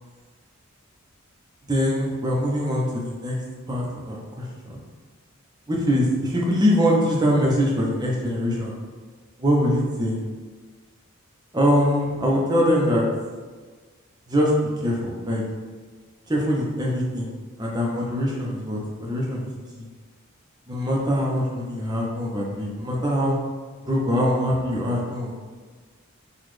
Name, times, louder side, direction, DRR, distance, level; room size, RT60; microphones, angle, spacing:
voice 1, 1.7-3.4 3.7-4.8 5.7-8.7 9.4-10.2 11.5-13.0 14.3-14.5 14.8-15.4 16.3-17.3 17.6-19.5 19.8-19.9 20.7-23.4 23.9-25.3, equal, 20° right, -3 dB, 0.8 m, -23 dB
5.9 x 2.5 x 3.2 m, 1.5 s
head